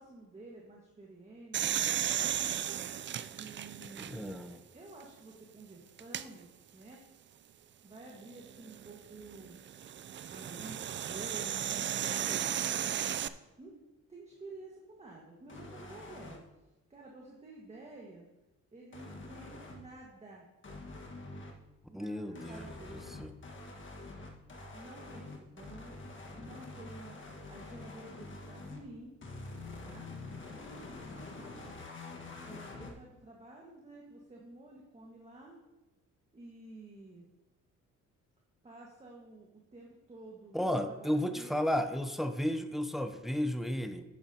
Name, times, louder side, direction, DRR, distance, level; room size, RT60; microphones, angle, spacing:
voice 1, 0.0-1.8 3.3-4.4 4.7-6.5 6.7-7.0 7.8-9.6 10.3-12.7 13.6-13.8 14.1-16.5 16.9-18.3 18.7-20.5 21.9-23.1 24.7-25.9 26.3-27.2 27.5-29.1 29.8-30.1 30.5-31.8 32.4-35.6 36.3-37.3 38.6-41.7, right 2 dB, 20° right, -2 dB, 1.6 m, -51 dB
sound 1, 1.5-4.5 5.0-5.1 6.0-6.3 8.4-13.3, right 10 dB, 40° right, 0.4 m, -35 dB
voice 2, 4.0-4.6 21.9-23.3 40.5-44.0, equal, ahead, 8 dB, 0.7 m, -33 dB
sound 2, 15.5-16.4 18.9-19.8 20.6-21.5 22.3-28.8 29.2-32.9, left 2 dB, 40° left, 1.6 m, -46 dB
11.0 x 9.0 x 2.9 m, 1.0 s
cardioid pair, 90°, 30 cm